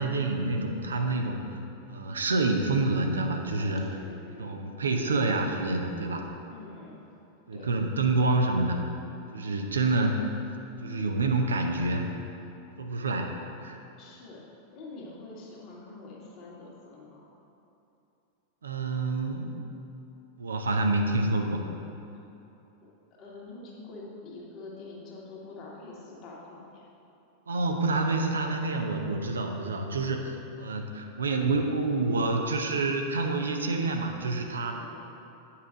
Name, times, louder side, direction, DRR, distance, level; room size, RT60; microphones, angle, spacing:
voice 1, 0.0-1.6 1.9-4.0 4.4-6.2 7.5-8.8 9.3-10.3 10.8-12.1 12.8-13.3 13.6-13.8 18.6-19.5 20.4-21.7 27.5-34.8, right 2 dB, 70° right, 4 dB, 0.6 m, -27 dB
voice 2, 4.0-4.6 6.5-7.1 7.5-7.7 14.0-14.5 14.7-17.2 22.2-22.3 22.8-22.9 23.2-26.9 34.7-35.0, left 3 dB, 40° left, -4 dB, 1.8 m, -45 dB
9.1 x 5.7 x 3.7 m, 2.9 s
figure-of-eight pair, 90°, 0 cm